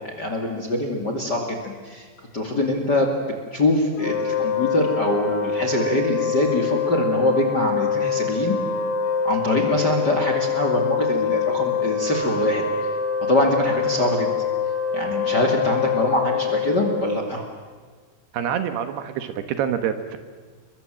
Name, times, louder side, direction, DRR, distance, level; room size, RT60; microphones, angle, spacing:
voice 1, 0.0-2.1 2.3-3.1 3.5-8.6 9.2-12.6 13.3-14.3 14.9-17.4, left 1 dB, 30° left, 3 dB, 2.3 m, -23 dB
Wind instrument woodwind instrument, 4.0-17.4, left 6 dB, 80° left, 6.4 m, -25 dB
voice 2, 18.3-20.2, right 9 dB, 70° right, 9 dB, 3.1 m, -26 dB
29.5 x 23.0 x 7.7 m, 1.5 s
omnidirectional pair, 5.1 m